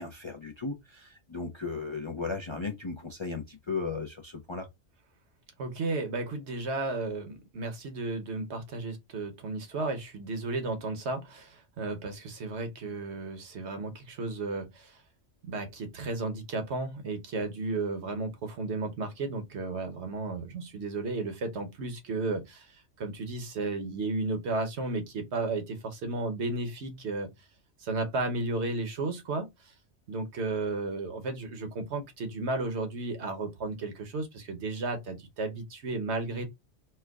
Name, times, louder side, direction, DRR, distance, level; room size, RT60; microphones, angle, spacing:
voice 1, 0.0-4.7, left 4 dB, 40° left, 0.4 m, -36 dB
voice 2, 5.6-15.0 15.4-22.7 23.0-27.3 27.8-29.5 30.1-36.5, right 3 dB, 70° right, 1.1 m, -33 dB
4.4 x 2.2 x 2.3 m
omnidirectional pair, 1.2 m